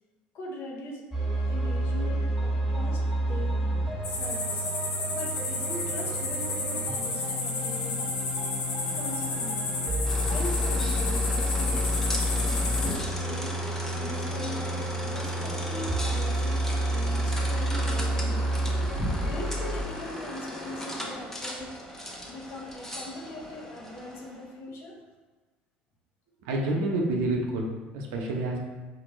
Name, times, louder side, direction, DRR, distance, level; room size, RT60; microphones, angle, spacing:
voice 1, 0.3-1.0 1.4-3.6 4.1-4.7 5.1-8.1 8.9-9.7 10.2-13.6 13.9-14.8 15.1-18.6 19.2-21.7 22.3-25.0, left 1 dB, 60° left, -1 dB, 1.0 m, -40 dB
sound 1, 1.1-19.8, right 1 dB, 10° right, 1.4 m, -30 dB
sound 2, 4.0-12.9, left 2 dB, 80° left, 1.3 m, -32 dB
sound 3, 10.0-24.5, left 1 dB, 10° left, 0.9 m, -36 dB
voice 2, 26.4-28.6, right 2 dB, 75° right, 1 dB, 0.7 m, -28 dB
5.1 x 2.6 x 3.1 m, 1.3 s
supercardioid pair, 80°, 5 cm